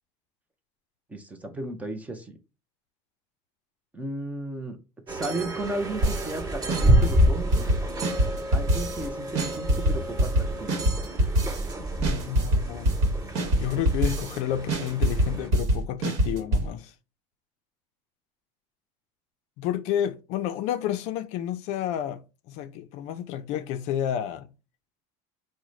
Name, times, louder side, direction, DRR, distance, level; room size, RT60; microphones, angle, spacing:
voice 1, 1.1-2.4 3.9-4.8 5.1-7.7 8.5-10.8, right 2 dB, 10° right, 0.5 m, -34 dB
sound 1, 5.1-15.5, right 1 dB, 25° right, 1.4 m, -29 dB
sound 2, 6.0-6.4 6.7-9.1 9.4-11.7 12.0-14.4 14.7-16.7, right 1 dB, 50° right, 1.3 m, -24 dB
voice 2, 12.0-13.0 13.6-16.9 19.6-24.5, left 10 dB, 50° left, 0.4 m, -30 dB
4.7 x 2.1 x 3.8 m
cardioid pair, 160°, 15 cm